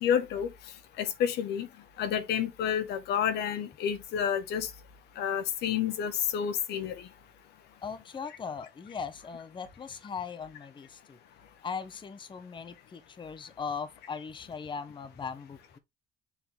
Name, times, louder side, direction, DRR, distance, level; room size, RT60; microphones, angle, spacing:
voice 1, 0.0-0.5 1.0-1.7 2.0-4.7 5.2-6.9, left 8 dB, 80° left, 1.5 m, -29 dB
voice 2, 7.8-11.2 11.6-15.8, left 6 dB, 30° left, 0.9 m, -39 dB
7.0 x 4.2 x 3.5 m
cardioid pair, 110°, 17 cm